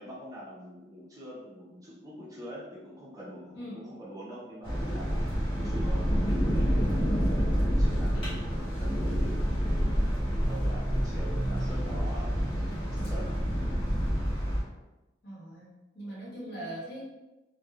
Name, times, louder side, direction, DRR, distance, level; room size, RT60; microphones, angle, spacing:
voice 1, 0.0-12.4 12.8-13.7, equal, 20° right, -7 dB, 0.5 m, -45 dB
sound 1, 4.6-14.6, equal, 25° left, 0.9 m, -28 dB
voice 2, 11.4-11.8 15.2-17.0, right 1 dB, 55° left, -6 dB, 0.9 m, -41 dB
3.1 x 2.0 x 2.3 m, 1.1 s
head